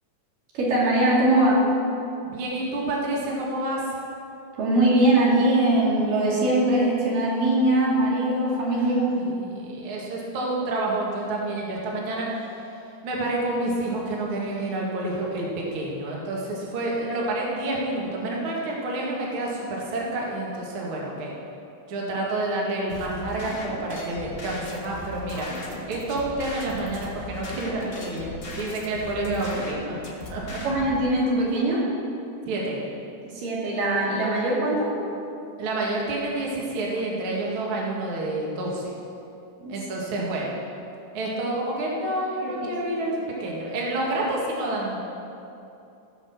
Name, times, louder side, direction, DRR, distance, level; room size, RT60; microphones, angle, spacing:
voice 1, 0.5-1.7 4.6-9.3 30.6-31.8 33.3-35.0 39.6-39.7 42.4-42.5, right 1 dB, 90° right, -5 dB, 4.1 m, -21 dB
voice 2, 2.2-3.8 8.8-12.7 13.0-21.4 21.9-25.5 25.9-30.0 30.3-30.6 32.5-32.8 35.6-38.9 39.7-40.6 41.1-45.0, right 2 dB, 45° right, -3 dB, 2.4 m, -29 dB
sound 1, 22.9-31.0, left 1 dB, 60° left, 0.6 m, -37 dB
16.5 x 5.9 x 7.2 m, 2.8 s
omnidirectional pair, 3.7 m